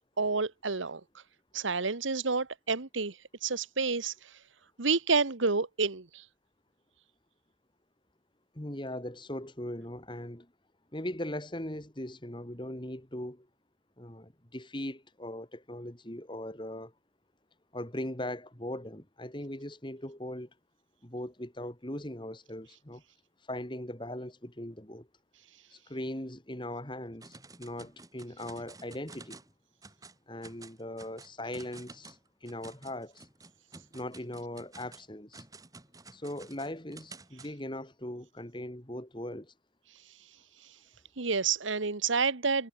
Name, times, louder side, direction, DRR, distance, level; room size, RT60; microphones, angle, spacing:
voice 1, 0.2-1.0 1.5-4.3 4.8-6.2 41.2-42.7, right 4 dB, 80° right, 1.4 m, -29 dB
voice 2, 8.5-10.5 10.9-13.5 14.0-16.9 17.7-20.5 21.0-23.0 23.5-25.1 25.7-29.4 30.3-33.3 33.9-35.4 36.1-39.5, left 1 dB, 25° left, 2.6 m, -39 dB
sound 1, 27.2-29.5 29.8-30.2 30.4-37.5, right 3 dB, 20° right, 3.3 m, -51 dB
head